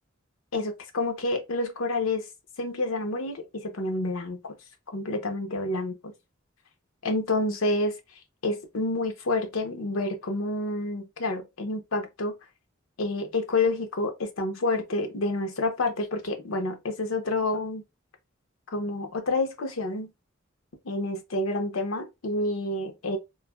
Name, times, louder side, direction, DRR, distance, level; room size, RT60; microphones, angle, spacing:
voice 1, 0.5-2.3 2.6-4.5 4.9-6.1 7.0-8.0 8.4-12.3 13.0-17.8 18.7-20.1 20.8-23.2, left 2 dB, 75° left, 0.7 m, -28 dB
3.2 x 2.5 x 2.2 m
head